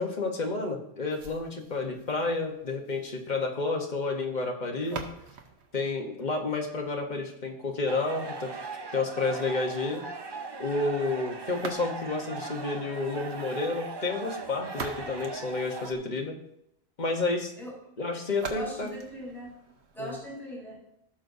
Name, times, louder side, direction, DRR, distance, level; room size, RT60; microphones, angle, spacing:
voice 1, 0.0-5.1 5.7-8.5 8.9-10.0 10.6-16.4 17.0-17.5 18.0-18.9 20.0-20.2, left 3 dB, 45° left, 2 dB, 1.2 m, -30 dB
sound 1, 1.1-7.1 11.5-12.3 14.4-16.3 18.3-20.3, right 4 dB, 75° right, 1.2 m, -44 dB
sound 2, 7.9-15.9, right 4 dB, 30° right, 0.5 m, -39 dB
voice 2, 18.5-19.5 19.9-20.8, equal, ahead, -5 dB, 3.5 m, -39 dB
15.5 x 6.3 x 2.7 m, 0.77 s
omnidirectional pair, 1.1 m